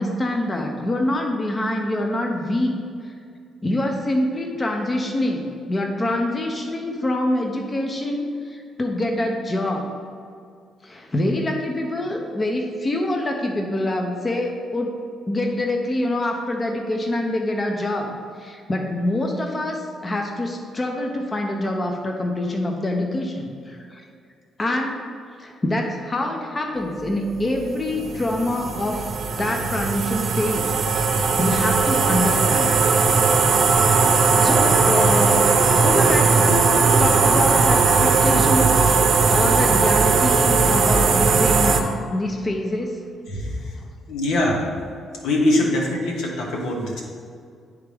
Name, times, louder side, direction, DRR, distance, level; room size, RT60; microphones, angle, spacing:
voice 1, 0.0-2.8 3.0-3.1 3.6-9.9 10.8-15.0 15.3-24.0 24.6-25.0 25.4-29.0 29.4-30.8 31.1-32.7 33.0-33.2 34.4-35.5 35.8-39.0 39.3-41.8 42.1-43.0, left 1 dB, 25° left, 2 dB, 0.7 m, -25 dB
sound 1, 27.4-41.8, right 4 dB, 60° right, 0.7 m, -18 dB
voice 2, 43.3-43.8 44.1-44.8 45.2-47.0, left 1 dB, 80° left, 0 dB, 1.2 m, -23 dB
10.5 x 3.5 x 3.4 m, 2.3 s
cardioid pair, 90°, 0 cm